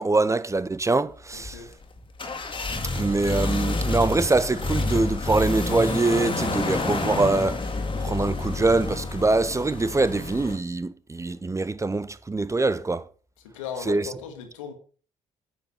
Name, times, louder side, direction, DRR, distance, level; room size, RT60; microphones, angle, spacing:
voice 1, 0.0-1.7 2.9-7.7 8.0-13.1 13.9-14.1, right 3 dB, 20° right, 0.8 m, -24 dB
voice 2, 1.3-1.7 13.5-14.7, left 7 dB, 80° left, 1.9 m, -37 dB
sound 1, 1.3-10.6, left 3 dB, 30° left, 2.2 m, -29 dB
10.0 x 7.0 x 6.6 m
hypercardioid pair, 50°, 16 cm